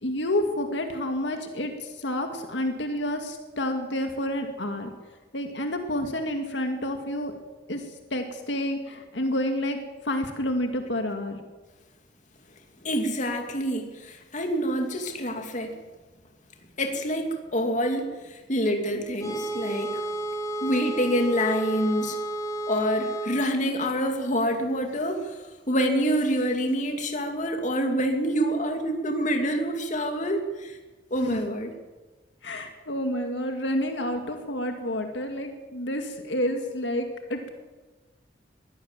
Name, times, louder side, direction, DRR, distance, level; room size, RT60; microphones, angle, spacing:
voice 1, 0.0-4.9 5.3-7.3 7.7-7.8 8.1-9.8 10.0-11.4 31.2-31.4 32.4-37.5, left 1 dB, 75° left, 5 dB, 2.2 m, -29 dB
voice 2, 12.8-15.7 16.8-20.0 20.6-22.2 22.7-25.3 25.7-30.7 31.1-31.7, equal, 45° left, 4 dB, 2.7 m, -26 dB
sound 1, 19.2-23.4, right 2 dB, 20° left, 4.9 m, -32 dB
22.0 x 16.0 x 7.5 m, 1.2 s
head